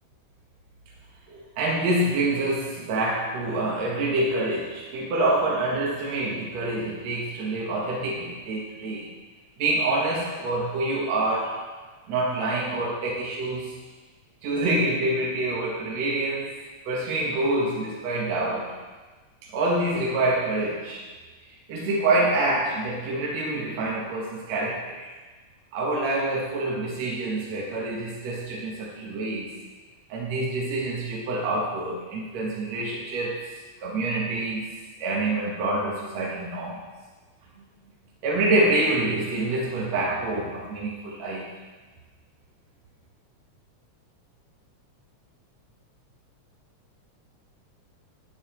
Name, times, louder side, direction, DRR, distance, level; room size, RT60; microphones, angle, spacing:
voice 1, 1.3-9.1 9.6-11.6 12.1-13.7 14.4-16.5 16.9-18.7 19.5-21.1 21.7-25.1 25.7-29.6 30.1-33.5 33.8-34.6 35.0-36.9 38.2-41.5, right 2 dB, 65° right, -3 dB, 2.4 m, -26 dB
11.5 x 9.5 x 3.0 m, 1.3 s
omnidirectional pair, 3.4 m